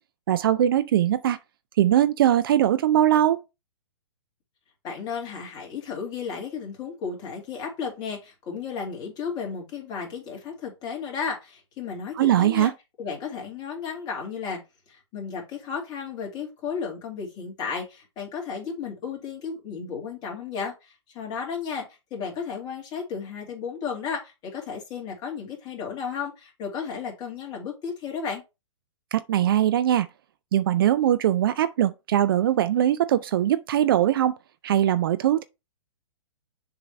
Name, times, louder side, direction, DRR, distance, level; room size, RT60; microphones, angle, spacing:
voice 1, 0.3-1.4 1.8-3.4 12.2-12.7 29.1-30.1 30.5-34.4 34.6-35.5, right 11 dB, 45° right, 0.5 m, -21 dB
voice 2, 4.8-12.7 13.0-14.6 14.9-21.9 22.1-28.4, left 6 dB, 25° left, 2.8 m, -33 dB
6.9 x 3.8 x 4.4 m
figure-of-eight pair, 120°, 16 cm